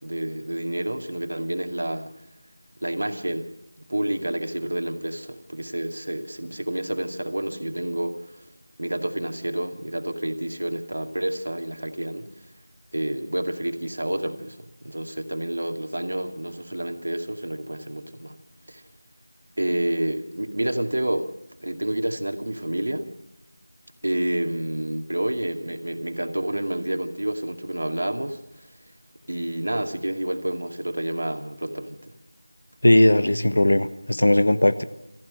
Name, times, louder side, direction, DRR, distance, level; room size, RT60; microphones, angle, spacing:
voice 1, 0.0-2.1 2.8-3.5 3.9-8.4 8.8-12.3 12.9-18.4 18.7-18.8 19.6-21.3 21.6-23.1 24.0-28.7 29.3-32.1, right 1 dB, 75° right, 5 dB, 2.3 m, -29 dB
voice 2, 32.8-34.8, left 1 dB, 70° left, 12 dB, 1.3 m, -18 dB
27.0 x 14.5 x 6.6 m, 0.92 s
figure-of-eight pair, 175°, 0 cm